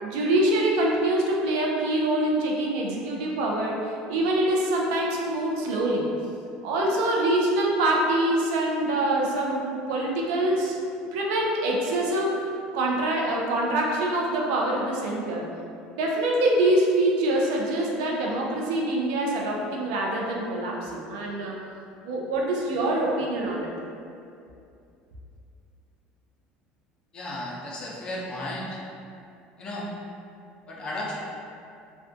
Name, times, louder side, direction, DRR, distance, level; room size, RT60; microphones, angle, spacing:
voice 1, 0.0-6.1 6.6-9.6 9.9-10.8 11.1-12.5 12.7-15.4 16.0-21.6 22.0-23.7, right 1 dB, 85° right, -1 dB, 0.4 m, -25 dB
voice 2, 27.1-28.8 29.6-29.9 30.7-31.1, left 1 dB, 30° left, -4 dB, 0.4 m, -34 dB
2.4 x 2.2 x 2.5 m, 2.6 s
cardioid pair, 135°, 3 cm